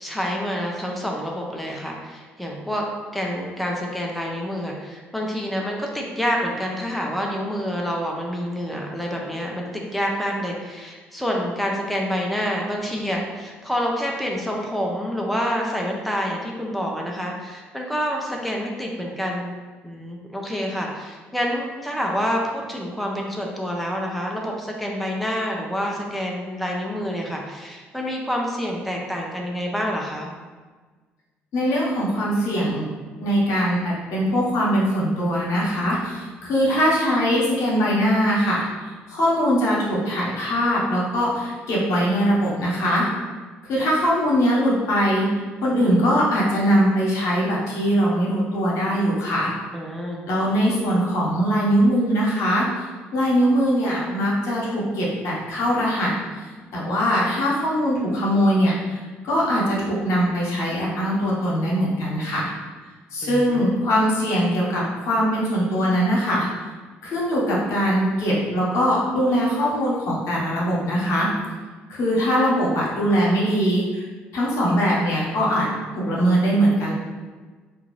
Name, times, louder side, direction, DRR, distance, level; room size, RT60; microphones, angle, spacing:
voice 1, 0.0-2.9 3.1-19.5 19.8-30.3 49.7-50.2 63.2-63.7, equal, ahead, -1 dB, 0.6 m, -27 dB
voice 2, 31.5-32.9 33.2-38.6 39.1-43.1 43.6-45.3 45.6-49.5 50.3-52.6 53.1-56.1 56.7-62.5 63.1-66.5 67.0-71.3 71.9-74.0 74.3-75.7 75.9-76.9, equal, 70° left, -4 dB, 1.0 m, -21 dB
3.7 x 2.5 x 3.1 m, 1.4 s
hypercardioid pair, 60°, 5 cm